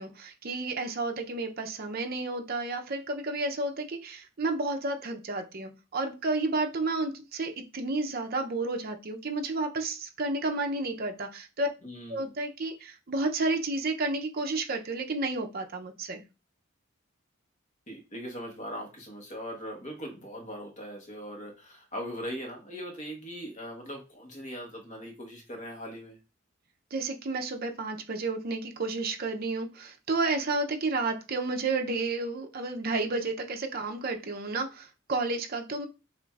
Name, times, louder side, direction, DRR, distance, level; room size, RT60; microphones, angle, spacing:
voice 1, 0.0-11.7 12.1-16.2 26.9-35.9, right 3 dB, 45° right, 0.6 m, -31 dB
voice 2, 11.8-12.3 17.9-26.2, equal, 35° left, 1.1 m, -40 dB
7.0 x 2.6 x 2.4 m
head